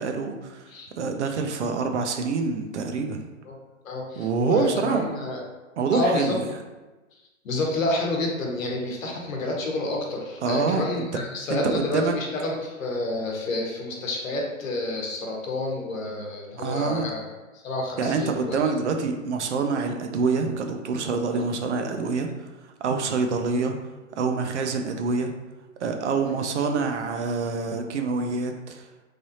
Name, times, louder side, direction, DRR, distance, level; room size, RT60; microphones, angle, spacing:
voice 1, 0.0-0.7 1.0-3.2 4.2-5.1 5.8-6.5 10.4-11.2 11.5-12.1 16.6-17.1 18.0-23.8 24.2-25.3 25.8-28.9, right 4 dB, 60° right, 5 dB, 0.5 m, -26 dB
voice 2, 3.8-5.4 5.9-6.4 7.4-17.2 17.5-18.6, left 2 dB, 70° left, -1 dB, 1.0 m, -29 dB
3.3 x 2.6 x 2.7 m, 1.2 s
hypercardioid pair, 145°, 41 cm